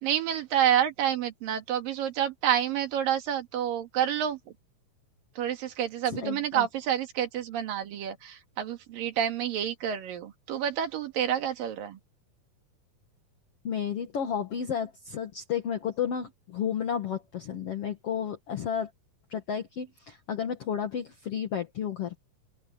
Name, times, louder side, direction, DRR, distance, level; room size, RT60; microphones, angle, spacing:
voice 1, 0.0-4.4 5.4-12.0, right 10 dB, 80° right, 3.6 m, -28 dB
voice 2, 6.1-6.7 13.6-18.9 19.3-22.2, left 8 dB, 50° left, 2.3 m, -32 dB
open air
omnidirectional pair, 4.0 m